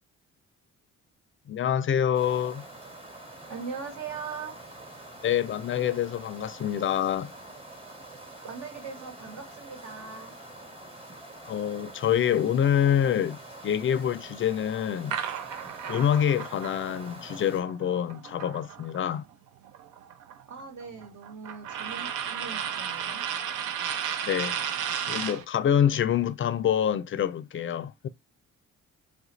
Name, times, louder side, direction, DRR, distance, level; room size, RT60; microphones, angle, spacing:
voice 1, 1.5-2.6 5.2-7.3 11.5-13.4 13.6-15.2 15.9-19.2 24.3-24.6 25.1-28.1, left 9 dB, 45° left, 0.4 m, -26 dB
sound 1, 2.1-17.6, right 1 dB, 20° right, 1.2 m, -46 dB
voice 2, 3.5-4.5 8.4-10.3 20.5-23.2, right 5 dB, 65° right, 1.4 m, -40 dB
sound 2, 15.1-19.2 19.5-25.4, right 8 dB, 90° right, 0.6 m, -34 dB
3.2 x 2.5 x 3.0 m
cardioid pair, 90°, 30 cm